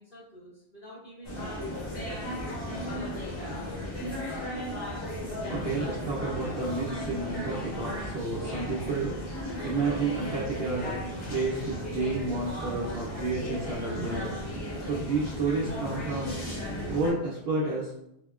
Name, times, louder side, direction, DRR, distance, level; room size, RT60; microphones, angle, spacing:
voice 1, 0.0-3.9, equal, 55° left, -7 dB, 0.8 m, -50 dB
sound 1, 1.2-17.1, left 1 dB, 75° left, 1.2 m, -35 dB
voice 2, 5.5-11.0 11.3-14.4 14.9-16.3 16.9-17.9, right 3 dB, 65° right, -5 dB, 0.8 m, -31 dB
3.4 x 2.1 x 2.3 m, 0.77 s
omnidirectional pair, 1.2 m